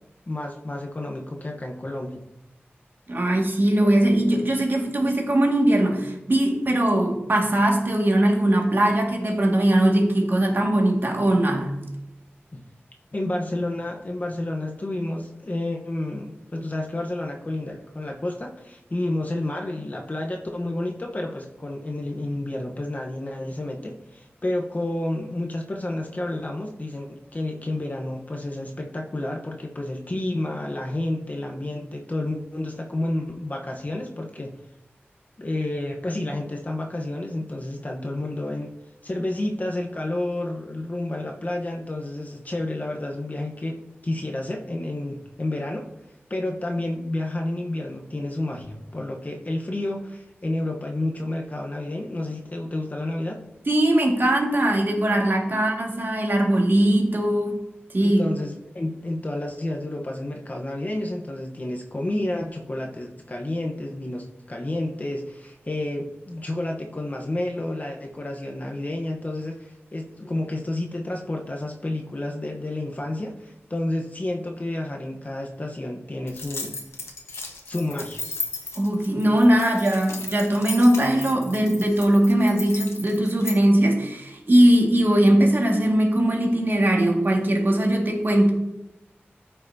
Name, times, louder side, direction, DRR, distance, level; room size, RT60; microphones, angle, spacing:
voice 1, 0.3-2.2 12.5-12.6 13.1-34.5 35.4-38.7 39.0-43.8 44.0-45.8 46.3-53.4 55.5-55.7 58.0-76.7 77.7-78.2, left 1 dB, 40° left, 1 dB, 1.0 m, -30 dB
voice 2, 3.1-11.8 53.7-57.6 57.9-58.2 78.8-88.5, right 1 dB, 55° right, 0 dB, 1.9 m, -20 dB
sound 1, 76.3-83.6, left 3 dB, 90° left, 1.2 m, -35 dB
14.0 x 5.7 x 2.7 m, 0.93 s
wide cardioid pair, 60°, 4 cm